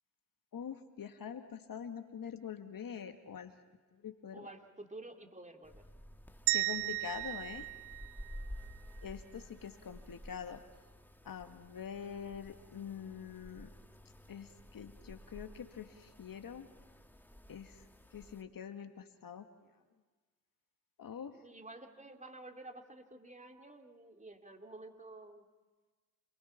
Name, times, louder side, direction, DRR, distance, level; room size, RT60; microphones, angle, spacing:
voice 1, 0.5-3.5 3.9-4.5 6.5-7.7 9.0-10.6 11.2-13.7 14.3-16.7 17.5-17.8 18.1-19.5 21.0-21.4, left 7 dB, 50° left, 7 dB, 2.1 m, -45 dB
voice 2, 4.3-5.8 21.4-25.4, right 2 dB, 15° right, 4 dB, 2.9 m, -51 dB
sound 1, 5.6-18.4, equal, 5° left, 2.0 m, -53 dB
sound 2, 6.5-8.7, right 22 dB, 70° right, 0.6 m, -35 dB
27.5 x 22.5 x 5.9 m, 1.3 s
hypercardioid pair, 45°, 42 cm